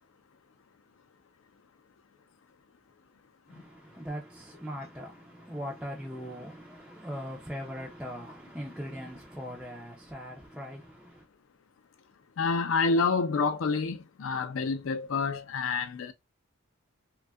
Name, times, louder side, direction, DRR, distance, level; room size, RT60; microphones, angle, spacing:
voice 1, 3.5-11.3, equal, 5° right, 0.3 m, -40 dB
voice 2, 12.4-16.1, left 4 dB, 70° left, 0.4 m, -28 dB
2.6 x 2.2 x 2.2 m
head